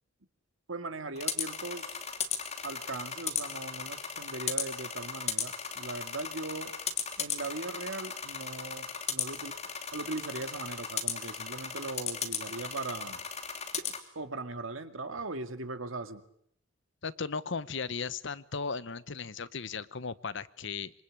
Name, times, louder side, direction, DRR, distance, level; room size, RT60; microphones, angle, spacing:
voice 1, 0.7-2.0 2.6-6.7 7.2-9.5 9.9-13.2 13.8-16.2, right 3 dB, 90° right, 8 dB, 2.3 m, -39 dB
sound 1, 1.2-14.0, left 7 dB, 35° left, 2.9 m, -36 dB
voice 2, 17.0-20.9, left 5 dB, 65° left, 16 dB, 1.0 m, -36 dB
26.5 x 23.5 x 8.6 m, 0.70 s
head